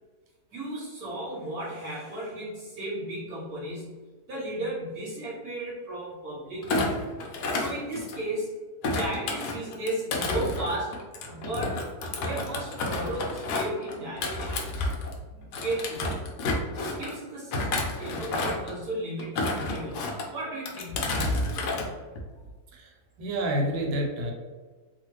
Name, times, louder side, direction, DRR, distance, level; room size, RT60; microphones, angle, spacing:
voice 1, 0.5-4.0 4.3-6.9 7.5-8.5 8.9-11.0 11.2-11.8 12.2-14.7 15.6-16.2 16.7-21.8, right 1 dB, 55° right, -6 dB, 1.3 m, -35 dB
Thump thud, 6.6-8.4 8.8-15.2 15.5-17.1 17.5-18.7 19.2-20.3 20.7-21.9 22.2-22.5, left 2 dB, 75° left, 0.9 m, -30 dB
voice 2, 15.2-15.6 22.7-24.3, right 1 dB, 80° right, 0 dB, 1.4 m, -30 dB
3.1 x 2.4 x 3.0 m, 1.3 s
omnidirectional pair, 2.2 m